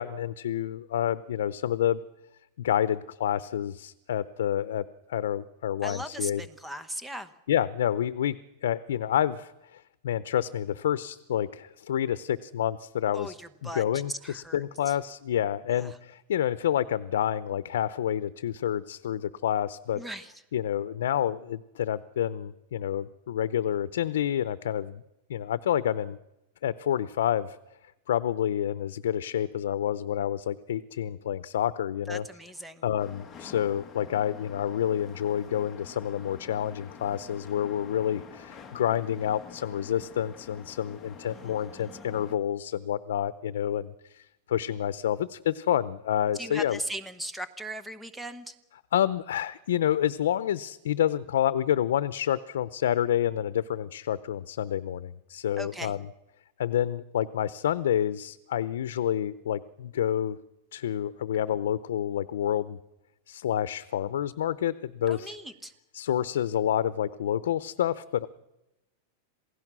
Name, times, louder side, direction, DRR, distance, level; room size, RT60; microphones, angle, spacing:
voice 1, 0.0-2.0 2.6-4.8 5.1-6.4 7.5-8.4 8.6-13.3 13.6-20.0 20.5-25.0 25.3-26.2 26.6-27.6 28.1-32.2 32.8-46.8 48.9-56.0 56.6-60.4 60.7-62.8 63.3-65.3 65.9-68.3, left 10 dB, 85° left, 15 dB, 0.7 m, -28 dB
voice 2, 5.8-7.3 13.1-14.9 15.7-16.0 20.0-20.3 32.1-32.8 41.3-42.1 46.4-48.5 55.6-55.9 65.1-65.7, equal, 5° right, 11 dB, 1.0 m, -39 dB
sound 1, 33.0-42.4, left 6 dB, 15° left, 1.7 m, -47 dB
27.5 x 17.5 x 6.2 m, 0.95 s
supercardioid pair, 170°, 0 cm